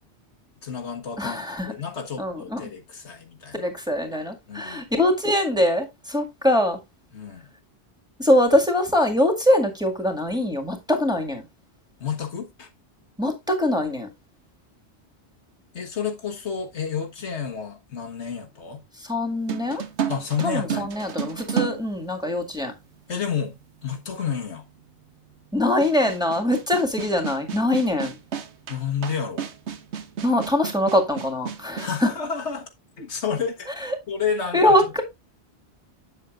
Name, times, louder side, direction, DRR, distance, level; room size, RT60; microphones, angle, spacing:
voice 1, 0.6-3.7 4.5-4.8 7.1-7.5 12.0-12.7 15.7-18.8 20.1-20.9 23.1-24.7 28.7-29.5 31.8-32.7 33.0-33.7 34.1-35.0, left 6 dB, 90° left, 1.8 m, -30 dB
voice 2, 1.2-1.7 2.2-2.7 3.5-6.8 8.2-11.4 13.2-14.1 19.0-19.8 20.4-22.7 25.5-28.2 30.2-32.1 33.8-34.0 34.5-35.0, left 1 dB, 5° right, 1.9 m, -23 dB
sound 1, 19.5-22.7 23.6-23.7 25.8-32.0, right 8 dB, 80° right, 1.2 m, -32 dB
8.3 x 7.5 x 2.5 m
omnidirectional pair, 1.1 m